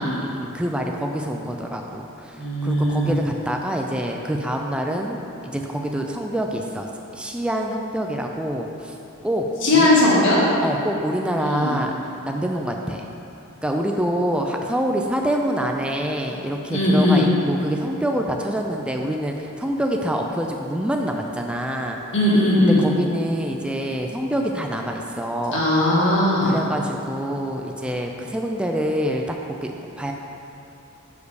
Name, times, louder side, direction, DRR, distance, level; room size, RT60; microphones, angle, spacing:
voice 1, 0.0-8.9 9.2-9.5 9.7-9.9 10.6-12.0 12.2-13.1 13.6-22.0 22.6-25.6 26.4-30.1, equal, 5° right, 1 dB, 0.3 m, -26 dB
voice 2, 2.4-3.1 9.6-10.4 11.4-11.8 16.7-17.3 22.1-22.8 25.5-26.6, left 1 dB, 60° left, -6 dB, 1.6 m, -18 dB
6.7 x 5.1 x 4.8 m, 2.9 s
head